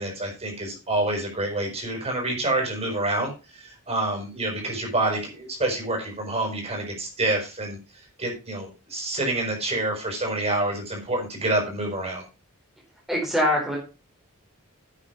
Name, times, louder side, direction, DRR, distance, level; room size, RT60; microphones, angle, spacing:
voice 1, 0.0-12.2, right 2 dB, 30° right, 1 dB, 6.1 m, -27 dB
voice 2, 13.1-13.8, left 1 dB, ahead, -4 dB, 4.4 m, -23 dB
10.0 x 8.5 x 5.4 m, 0.30 s
head